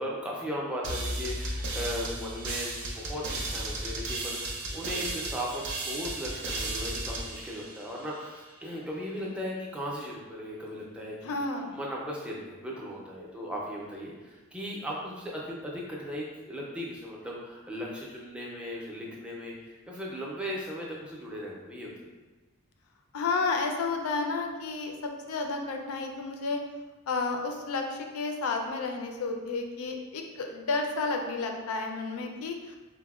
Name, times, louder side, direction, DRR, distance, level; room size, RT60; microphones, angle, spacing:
voice 1, 0.0-11.3 11.7-22.1, equal, 5° right, -4 dB, 0.4 m, -37 dB
sound 1, 0.8-8.3, right 2 dB, 75° right, 0.6 m, -35 dB
voice 2, 11.2-11.8 23.1-26.6 27.1-32.8, left 3 dB, 80° left, 3 dB, 0.4 m, -31 dB
3.9 x 2.1 x 2.3 m, 1.2 s
head